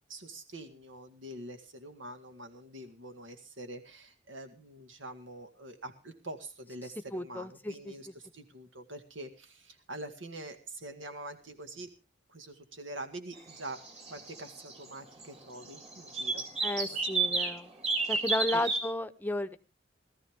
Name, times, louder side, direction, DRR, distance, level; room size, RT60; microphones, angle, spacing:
voice 1, 0.1-11.9 12.3-13.8 14.1-16.5 16.9-17.0 18.5-18.6, right 1 dB, 90° right, 6 dB, 1.9 m, -45 dB
voice 2, 7.1-8.1 16.6-17.7 18.1-19.6, left 1 dB, 10° left, 11 dB, 0.8 m, -33 dB
sound 1, 13.4-15.0 15.2-15.3 15.6-17.6 17.8-18.8, right 3 dB, 35° right, 3.7 m, -32 dB
19.0 x 14.0 x 3.6 m, 0.33 s
head